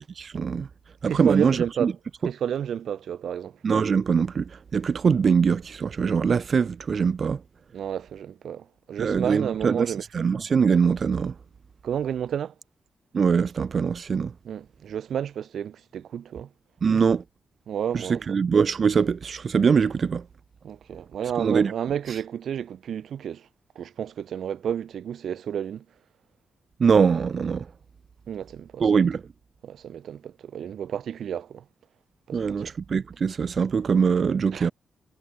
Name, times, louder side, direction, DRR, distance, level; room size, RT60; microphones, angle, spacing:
voice 1, 0.1-0.7 1.0-1.9 3.6-7.4 9.0-11.3 13.1-14.3 16.8-17.2 17.9-20.3 21.4-21.7 22.1-22.2 26.8-27.7 28.8-29.2 32.3-34.7, right 6 dB, 45° right, 0.8 m, -23 dB
voice 2, 1.1-1.9 2.2-3.6 7.7-10.0 11.8-12.5 14.4-16.5 17.7-18.2 20.6-23.5 23.7-25.8 28.3-29.1 29.6-31.6 32.3-32.7 34.5-34.7, right 9 dB, 75° right, 1.1 m, -31 dB
wide cardioid pair, 145°, 0 cm